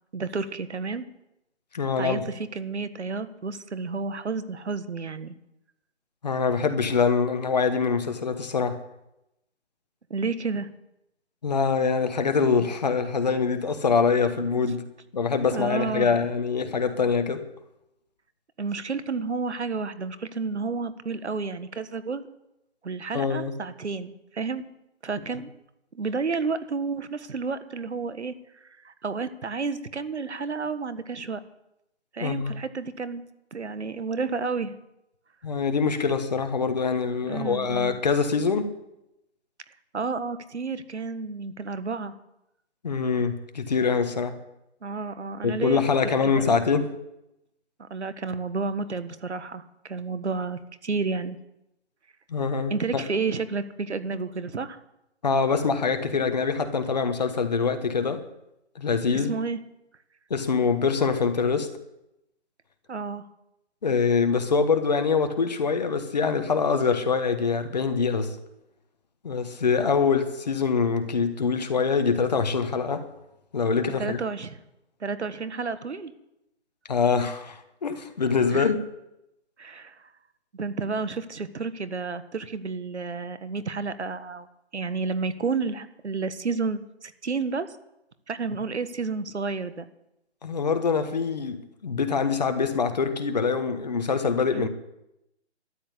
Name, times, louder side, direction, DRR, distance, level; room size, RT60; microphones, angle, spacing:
voice 1, 0.1-1.0 2.0-5.3 10.1-10.7 15.5-16.1 18.6-22.3 22.8-24.6 25.0-25.5 25.9-28.3 28.6-31.4 32.1-33.2 33.5-34.7 37.3-37.9 39.9-42.1 44.8-45.8 46.2-46.5 47.8-51.4 52.7-54.8 59.1-59.6 62.9-63.2 74.0-74.6 75.0-76.1 78.5-78.7 79.6-80.0 80.5-84.5 84.7-87.7 88.3-89.8 94.5-94.7, right 4 dB, 75° right, 13 dB, 1.5 m, -31 dB
voice 2, 1.7-2.3 6.2-8.8 11.4-14.8 15.1-17.4 23.1-23.5 32.2-32.5 35.4-38.7 42.8-44.4 45.4-46.9 52.3-53.0 55.2-58.2 58.7-59.3 60.3-61.7 63.8-68.4 69.2-73.1 73.5-74.2 76.9-78.8 90.4-94.7, left 5 dB, 35° left, 8 dB, 1.3 m, -24 dB
13.0 x 10.5 x 8.6 m, 0.85 s
hypercardioid pair, 170°, 35 cm